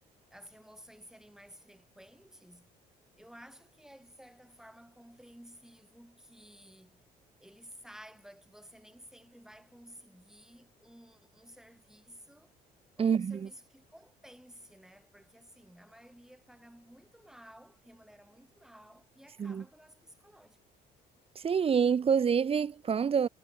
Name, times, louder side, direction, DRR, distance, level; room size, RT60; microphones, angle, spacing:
voice 1, 0.3-2.7 3.1-7.0 7.4-12.5 13.0-20.6, equal, 5° right, 6.5 m, -54 dB
voice 2, 13.0-13.4 19.4-19.6 21.4-23.3, right 7 dB, 35° right, 1.2 m, -27 dB
cardioid pair, 110°, 17 cm